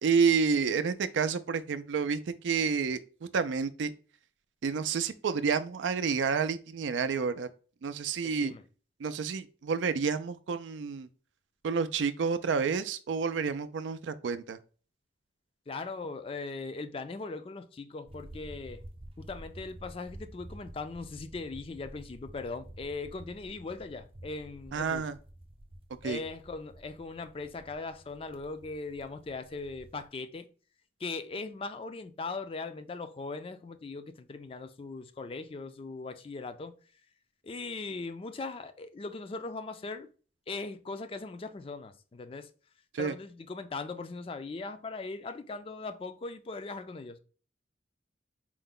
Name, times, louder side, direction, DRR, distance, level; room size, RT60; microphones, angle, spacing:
voice 1, 0.0-3.9 4.6-7.5 7.8-8.5 9.0-11.1 11.6-14.6 24.7-25.1 26.0-26.2 42.9-43.1, right 5 dB, 90° right, 0.4 m, -29 dB
voice 2, 8.2-8.6 15.7-18.8 19.2-25.0 26.0-30.5 31.0-36.7 37.4-40.1 40.5-42.5 42.9-47.2, left 3 dB, 30° left, 0.4 m, -39 dB
sound 1, 18.1-30.1, right 1 dB, 30° right, 0.5 m, -50 dB
4.5 x 2.1 x 3.7 m
head